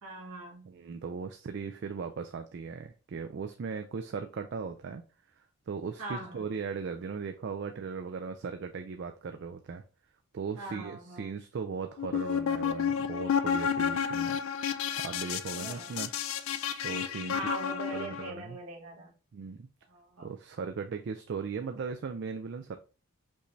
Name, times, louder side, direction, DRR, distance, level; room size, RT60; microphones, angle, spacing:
voice 1, 0.0-0.8 6.0-6.4 10.6-11.3 15.5-15.9 17.3-19.1 19.9-20.3, right 2 dB, 75° right, 1.3 m, -41 dB
voice 2, 0.6-5.0 5.4-9.8 10.3-16.1 16.8-17.4 17.9-18.6 19.3-19.7 20.2-22.8, right 5 dB, 50° right, 0.3 m, -38 dB
sound 1, 12.0-18.3, left 7 dB, 65° left, 0.3 m, -31 dB
5.4 x 2.6 x 3.1 m
head